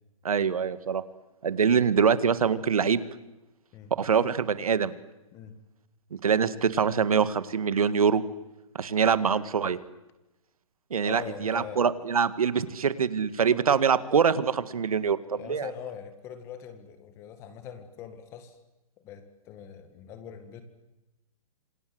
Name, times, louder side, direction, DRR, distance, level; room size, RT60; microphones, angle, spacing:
voice 1, 0.2-1.0 1.4-3.0 4.0-4.9 6.1-8.2 8.8-9.8 10.9-15.7, right 6 dB, 75° right, 14 dB, 2.0 m, -24 dB
voice 2, 11.0-11.8 15.4-18.6 19.0-20.6, left 8 dB, 15° left, 10 dB, 2.0 m, -42 dB
27.0 x 26.5 x 8.0 m, 0.97 s
hypercardioid pair, 170°, 18 cm